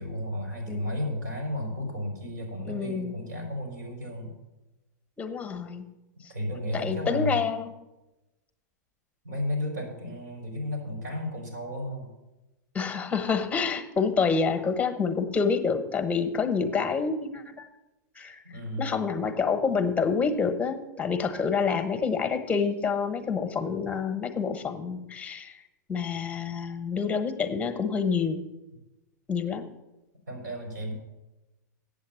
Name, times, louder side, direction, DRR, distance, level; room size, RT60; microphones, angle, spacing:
voice 1, 0.0-4.3 6.3-7.4 9.2-12.1 18.4-19.0 30.3-30.9, left 1 dB, 85° right, 1 dB, 4.1 m, -33 dB
voice 2, 2.7-3.1 5.2-5.9 6.7-7.7 12.7-17.7 18.2-18.4 18.8-25.6 25.9-28.5 29.3-29.7, left 5 dB, 15° left, 8 dB, 1.0 m, -27 dB
8.5 x 7.3 x 7.2 m, 1.0 s
hypercardioid pair, 110°, 10 cm